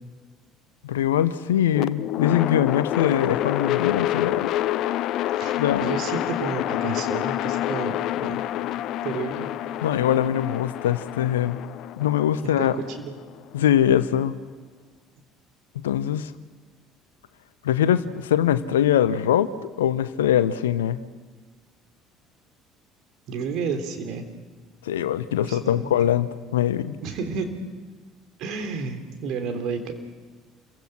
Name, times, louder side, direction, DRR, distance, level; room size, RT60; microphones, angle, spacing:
voice 1, 0.8-4.5 5.6-5.9 9.8-11.6 12.0-12.8 13.5-14.4 15.7-16.3 17.6-21.0 24.8-27.0, left 10 dB, 75° left, 14 dB, 0.9 m, -22 dB
sound 1, 1.7-13.8, left 13 dB, 55° left, 0.7 m, -28 dB
voice 2, 5.4-8.4 9.0-9.5 12.4-13.1 23.3-24.3 25.4-25.9 27.0-27.5 28.4-29.9, right 5 dB, 55° right, 6 dB, 3.5 m, -31 dB
29.0 x 23.0 x 6.2 m, 1.5 s
figure-of-eight pair, 60°, 0 cm